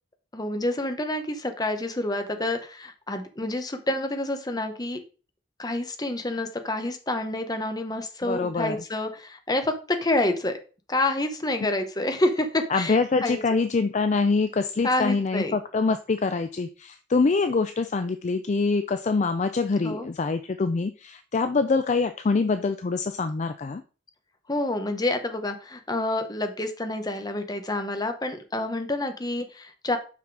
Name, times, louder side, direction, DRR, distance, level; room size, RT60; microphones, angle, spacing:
voice 1, 0.3-5.0 5.6-10.6 10.9-13.4 14.8-15.6 19.8-20.1 24.5-30.0, left 1 dB, 20° left, 7 dB, 1.0 m, -28 dB
voice 2, 8.2-8.8 12.7-23.8, left 4 dB, 40° left, 9 dB, 0.4 m, -25 dB
6.0 x 5.7 x 4.7 m, 0.36 s
head